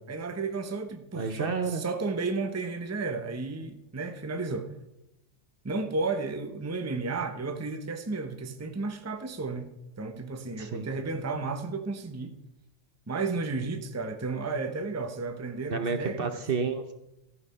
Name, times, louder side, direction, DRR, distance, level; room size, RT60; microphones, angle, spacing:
voice 1, 0.0-4.7 5.6-9.7 10.0-12.3 13.1-16.3, right 3 dB, 15° right, 7 dB, 0.7 m, -33 dB
voice 2, 1.1-1.8 10.6-10.9 15.7-16.9, right 5 dB, 50° right, 8 dB, 0.9 m, -30 dB
14.0 x 6.5 x 5.3 m, 0.89 s
omnidirectional pair, 1.3 m